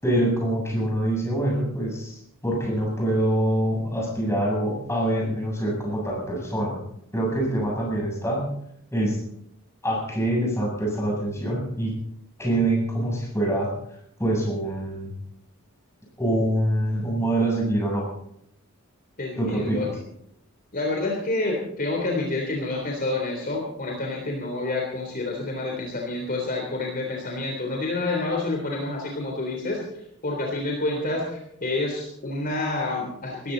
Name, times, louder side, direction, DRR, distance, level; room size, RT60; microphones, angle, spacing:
voice 1, 0.0-6.8 7.1-8.5 8.9-9.2 9.8-11.9 12.4-13.7 14.2-15.1 16.2-18.1 19.4-19.9, right 1 dB, 15° left, -2 dB, 7.9 m, -25 dB
voice 2, 19.2-19.9 20.7-33.5, left 2 dB, 45° left, -1 dB, 3.5 m, -28 dB
20.0 x 15.5 x 4.0 m, 0.75 s
head